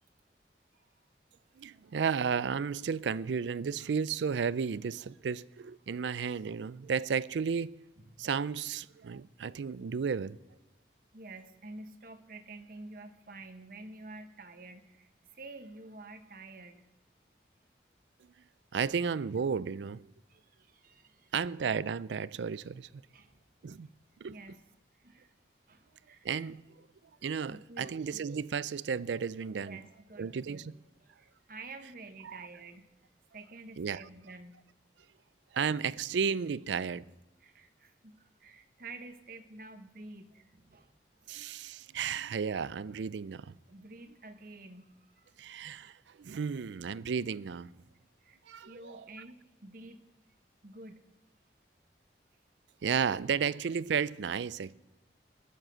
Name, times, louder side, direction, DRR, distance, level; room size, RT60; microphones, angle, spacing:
voice 1, 1.6-7.8 8.2-10.4 18.7-20.0 21.3-22.9 23.6-23.9 24.2-24.4 26.2-26.6 27.2-29.8 30.2-30.7 32.2-32.4 33.8-34.0 35.5-37.0 41.3-43.5 45.4-47.7 48.5-49.0 52.8-54.7, right 6 dB, 85° right, 0.4 m, -33 dB
voice 2, 11.1-16.8 20.3-21.3 23.1-23.4 24.2-24.6 25.0-25.3 25.7-26.5 27.5-28.2 29.5-30.7 31.0-32.9 33.3-34.6 37.4-40.9 41.2-41.3 43.7-45.3 48.2-48.4 48.7-50.0 50.6-51.0, right 2 dB, 50° right, 1.1 m, -49 dB
20.5 x 7.5 x 6.4 m
head